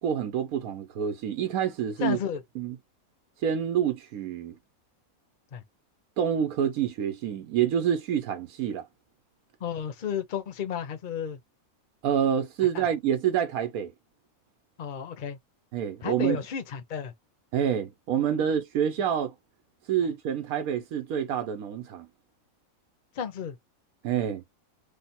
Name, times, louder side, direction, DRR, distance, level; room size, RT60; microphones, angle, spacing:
voice 1, 0.0-2.2 2.6-2.8 3.4-4.5 6.2-8.9 12.0-13.9 15.7-16.4 17.5-19.3 19.9-22.1 24.0-24.4, right 9 dB, 85° right, 1.2 m, -27 dB
voice 2, 2.0-2.4 5.5-5.6 9.6-11.4 12.7-12.8 14.8-15.4 16.0-17.1 18.4-18.5 23.1-23.6, left 8 dB, 45° left, 0.7 m, -32 dB
3.3 x 2.1 x 4.2 m
omnidirectional pair, 1.5 m